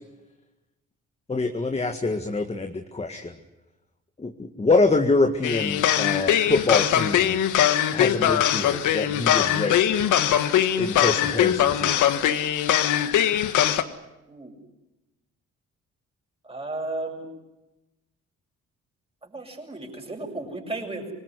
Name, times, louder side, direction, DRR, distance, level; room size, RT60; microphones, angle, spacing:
voice 1, 1.3-3.4 4.2-7.4 7.9-9.8 10.8-12.1, left 3 dB, 20° left, 5 dB, 1.9 m, -25 dB
sound 1, 5.4-13.8, left 10 dB, 80° left, 1.6 m, -21 dB
voice 2, 16.4-17.3 19.2-21.1, right 2 dB, 20° right, 2 dB, 7.2 m, -34 dB
25.5 x 20.5 x 9.6 m, 1.0 s
cardioid pair, 90°, 30 cm